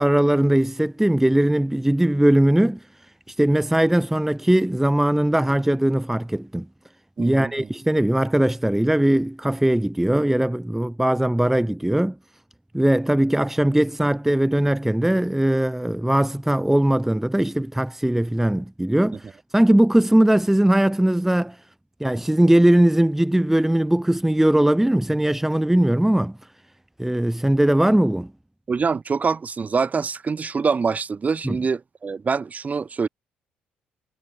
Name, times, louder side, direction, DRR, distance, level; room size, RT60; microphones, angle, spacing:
voice 1, 0.0-2.8 3.3-6.7 7.2-12.2 12.7-21.6 22.0-26.4 27.0-28.3 31.4-31.6, right 1 dB, 5° right, 2.1 m, -20 dB
voice 2, 7.2-7.7 28.7-33.1, right 5 dB, 35° right, 6.8 m, -25 dB
hypercardioid pair, 55°, 4 cm